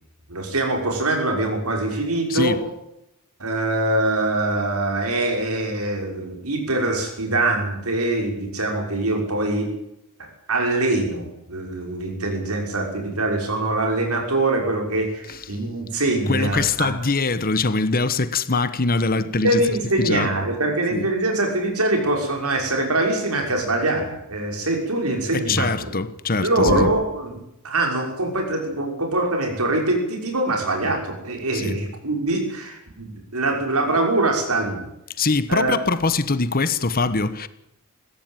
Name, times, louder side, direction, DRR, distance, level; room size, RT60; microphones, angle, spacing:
voice 1, 0.3-2.6 3.4-9.7 10.5-16.9 19.1-25.9 26.4-27.3 27.6-34.9 35.5-35.7, right 2 dB, 75° right, 6.1 m, -23 dB
voice 2, 2.3-2.6 15.3-15.5 16.3-19.7 20.0-20.3 20.9-21.1 25.3-26.9 31.5-31.8 35.2-37.5, left 3 dB, 40° left, 1.2 m, -23 dB
22.0 x 16.0 x 9.3 m
head